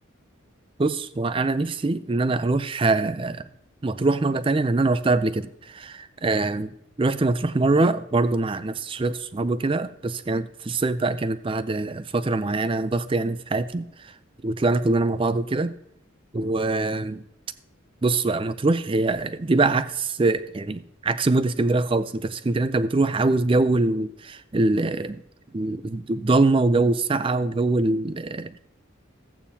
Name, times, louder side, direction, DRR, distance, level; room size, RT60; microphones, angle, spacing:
voice 1, 0.8-3.5 3.8-14.1 14.4-15.7 16.3-17.2 18.0-25.2 25.5-28.6, right 2 dB, 25° right, 14 dB, 0.4 m, -23 dB
14.5 x 8.6 x 2.8 m, 0.72 s
head